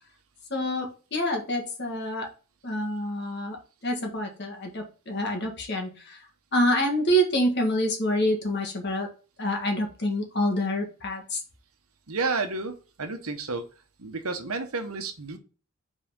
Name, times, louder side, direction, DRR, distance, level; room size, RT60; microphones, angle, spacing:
voice 1, 0.5-2.3 2.6-3.6 3.8-6.2 6.5-9.1 9.4-11.4, equal, 50° left, 2 dB, 1.7 m, -27 dB
voice 2, 12.1-13.6 14.0-15.4, right 4 dB, 80° right, 6 dB, 1.2 m, -31 dB
5.5 x 4.2 x 5.5 m, 0.35 s
head